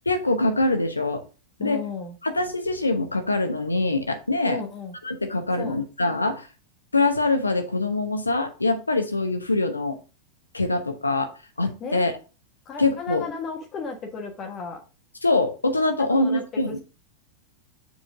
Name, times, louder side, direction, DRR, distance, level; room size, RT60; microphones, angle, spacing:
voice 1, 0.1-1.2 1.6-1.8 2.2-4.6 5.0-6.5 6.9-10.0 10.5-11.3 11.6-12.1 12.8-13.2 15.2-16.8, left 2 dB, 80° left, 6 dB, 1.0 m, -24 dB
voice 2, 1.6-2.2 4.4-5.0 5.5-5.8 11.8-12.2 12.6-14.8 16.1-16.8, left 5 dB, 30° left, 2 dB, 1.3 m, -34 dB
7.2 x 4.3 x 4.9 m, 0.33 s
figure-of-eight pair, 90°, 0 cm